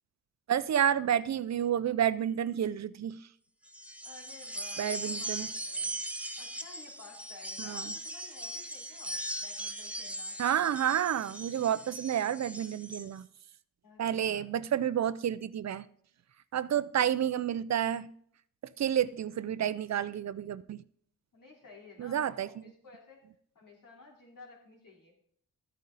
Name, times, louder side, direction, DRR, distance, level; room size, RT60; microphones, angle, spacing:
voice 1, 0.5-3.2 4.8-5.5 7.6-7.9 10.4-13.3 14.0-15.9 16.5-18.1 18.8-20.8 22.0-22.5, right 9 dB, 55° right, 0.5 m, -30 dB
sound 1, 3.7-13.1, right 1 dB, 5° right, 0.7 m, -39 dB
voice 2, 4.0-6.0 6.4-10.4 13.8-14.5 21.3-23.2 23.6-25.1, left 3 dB, 75° left, 3.6 m, -54 dB
13.0 x 9.2 x 4.0 m
wide cardioid pair, 105°, 33 cm